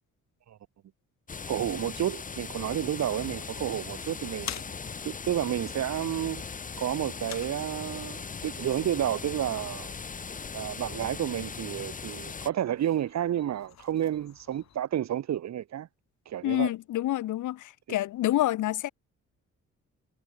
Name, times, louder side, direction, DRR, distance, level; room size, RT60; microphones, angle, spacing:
sound 1, 1.3-12.5, left 5 dB, 25° left, 5.8 m, -39 dB
voice 1, 1.5-4.6 5.0-6.4 6.8-9.9 10.5-15.9 16.3-16.7 17.9-18.0, right 11 dB, 65° right, 3.8 m, -31 dB
sound 2, 2.9-14.8, left 11 dB, 65° left, 4.4 m, -49 dB
voice 2, 16.4-18.9, left 14 dB, 90° left, 1.1 m, -28 dB
wide cardioid pair, 180°, 30 cm